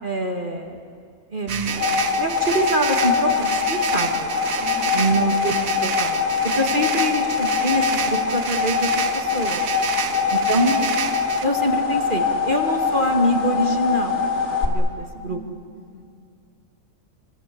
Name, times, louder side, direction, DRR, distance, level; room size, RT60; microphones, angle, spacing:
voice 1, 0.0-0.8 1.3-1.7 2.2-4.3 4.9-5.5 5.8-6.2 6.6-9.6 10.3-10.9 11.4-14.2 14.6-15.4, right 1 dB, 35° right, 2 dB, 2.2 m, -24 dB
sound 1, 1.5-14.7, left 6 dB, 45° left, 3.1 m, -23 dB
sound 2, 1.5-11.5, right 7 dB, 65° right, 1.5 m, -29 dB
voice 2, 4.6-5.3 6.4-7.0 9.9-10.4 15.1-16.0, right 1 dB, 65° left, 0 dB, 5.6 m, -41 dB
28.0 x 25.5 x 7.8 m, 2.2 s
omnidirectional pair, 1.6 m